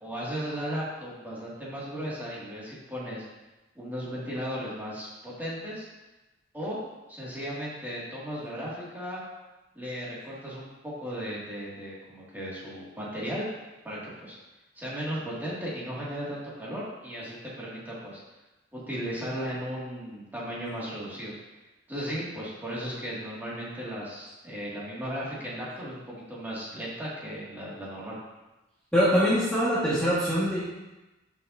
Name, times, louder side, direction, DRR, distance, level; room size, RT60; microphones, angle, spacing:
voice 1, 0.0-3.2 3.8-5.9 6.5-6.8 7.1-9.2 9.7-13.4 13.8-14.4 14.8-18.2 18.7-21.3 21.9-28.2, equal, 10° right, -8 dB, 2.2 m, -36 dB
voice 2, 28.9-30.7, equal, 5° left, -11 dB, 1.6 m, -23 dB
11.0 x 5.7 x 2.7 m, 1.1 s
head